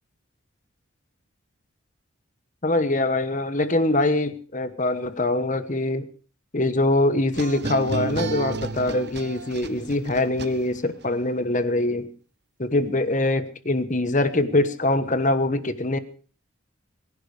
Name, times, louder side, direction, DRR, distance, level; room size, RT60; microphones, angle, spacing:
voice 1, 2.6-6.0 6.5-12.1 12.6-16.0, left 2 dB, 35° left, 12 dB, 1.2 m, -23 dB
sound 1, 7.3-11.0, right 3 dB, 50° right, 1.0 m, -32 dB
23.5 x 11.0 x 4.9 m, 0.40 s
head